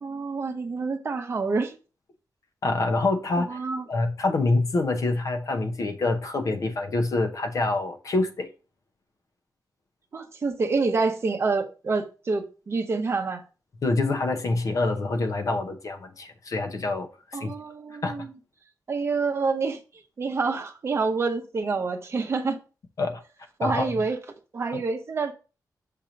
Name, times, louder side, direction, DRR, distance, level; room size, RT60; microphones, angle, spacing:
voice 1, 0.0-1.8 3.4-3.8 10.1-13.4 17.3-18.3 18.9-19.8 20.2-22.6 23.6-24.2 24.5-25.3, right 4 dB, 40° right, 0.8 m, -27 dB
voice 2, 2.6-3.6 3.9-8.5 13.8-17.5 18.0-18.2 23.0-23.2 23.6-23.9 24.7-24.8, left 2 dB, 55° left, 0.9 m, -26 dB
6.7 x 2.9 x 5.1 m
wide cardioid pair, 170°, 7 cm